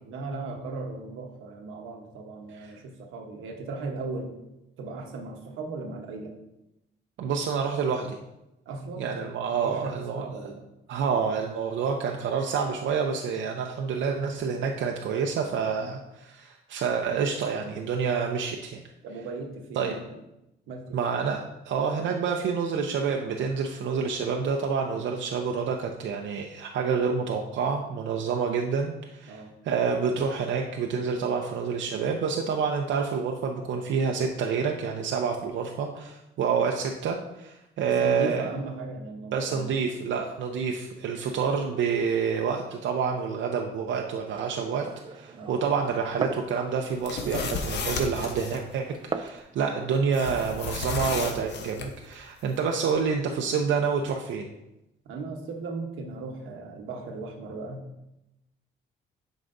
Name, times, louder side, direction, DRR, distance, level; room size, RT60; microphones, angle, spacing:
voice 1, 0.0-4.3 4.8-6.3 8.7-9.3 9.6-10.6 19.0-20.1 20.7-21.2 29.3-29.5 38.0-39.8 45.3-45.5 55.0-57.8, right 3 dB, 90° right, 3 dB, 1.0 m, -37 dB
voice 2, 7.2-8.2 9.0-10.3 10.9-18.8 19.8-19.9 20.9-38.4 39.3-54.5, right 6 dB, 70° right, 2 dB, 0.6 m, -28 dB
Glass, 44.3-49.4, right 5 dB, 25° right, 0.4 m, -39 dB
sound 1, 46.9-48.6 50.1-51.9, left 5 dB, 60° left, 0.9 m, -33 dB
7.7 x 5.1 x 2.6 m, 0.91 s
cardioid pair, 90°, 20 cm